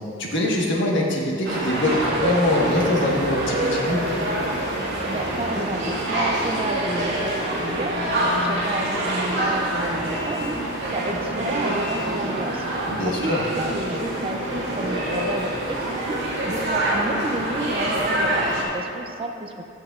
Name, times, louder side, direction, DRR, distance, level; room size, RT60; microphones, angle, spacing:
voice 1, 0.2-4.1 12.9-13.4, left 1 dB, 65° left, -2 dB, 1.4 m, -23 dB
sound 1, 1.4-18.6, right 1 dB, 60° right, 2.0 m, -26 dB
voice 2, 5.1-12.6 13.0-16.2 16.5-19.6, right 2 dB, 30° right, 4 dB, 0.5 m, -31 dB
13.5 x 7.9 x 2.4 m, 2.7 s
head